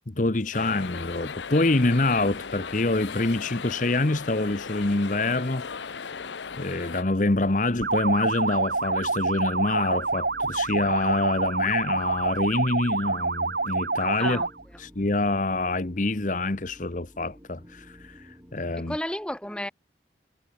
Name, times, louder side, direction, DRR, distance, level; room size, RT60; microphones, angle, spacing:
voice 1, 0.1-5.7 6.6-14.4 14.8-19.0, left 2 dB, 45° left, 1.1 m, -26 dB
sound 1, 0.5-7.0, left 5 dB, 80° left, 0.8 m, -37 dB
sound 2, 0.8-18.6, equal, 15° right, 4.9 m, -53 dB
sound 3, 7.8-14.6, right 3 dB, 60° right, 1.6 m, -27 dB
voice 2, 18.8-19.7, left 1 dB, 5° left, 1.5 m, -32 dB
head